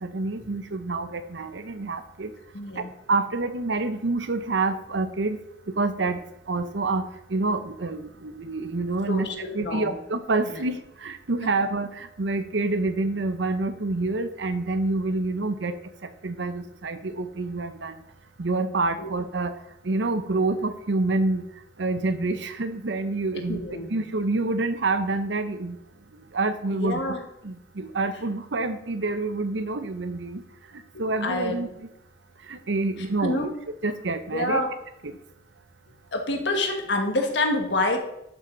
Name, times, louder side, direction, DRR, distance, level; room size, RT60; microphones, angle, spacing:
voice 1, 0.0-2.3 2.8-5.4 5.7-6.2 6.5-15.7 16.0-18.0 18.4-19.6 19.8-21.4 21.8-23.6 23.9-25.8 26.3-27.0 27.4-30.4 31.0-31.9 32.5-33.5 33.8-34.6 35.0-35.2, right 3 dB, 80° right, 10 dB, 0.8 m, -27 dB
voice 2, 2.5-2.9 9.1-9.9 10.5-10.6 19.0-19.1 23.5-23.9 26.7-27.2 31.2-31.6 33.2-33.5 34.3-34.7 36.1-38.0, left 2 dB, 70° left, 3 dB, 1.5 m, -27 dB
11.5 x 6.2 x 3.9 m, 0.83 s
head